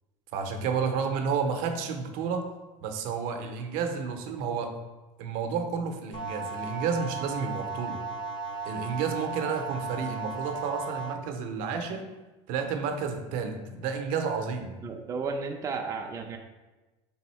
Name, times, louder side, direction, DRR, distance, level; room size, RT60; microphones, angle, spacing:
voice 1, 0.3-2.5 2.8-4.7 5.2-8.0 8.6-12.1 12.5-14.7, right 5 dB, 65° right, 5 dB, 0.6 m, -31 dB
sound 1, 6.1-11.1, right 4 dB, 35° left, 0.5 m, -36 dB
voice 2, 14.8-16.4, right 4 dB, 20° right, 2 dB, 0.4 m, -33 dB
3.4 x 2.7 x 4.2 m, 1.1 s
supercardioid pair, 105°, 15 cm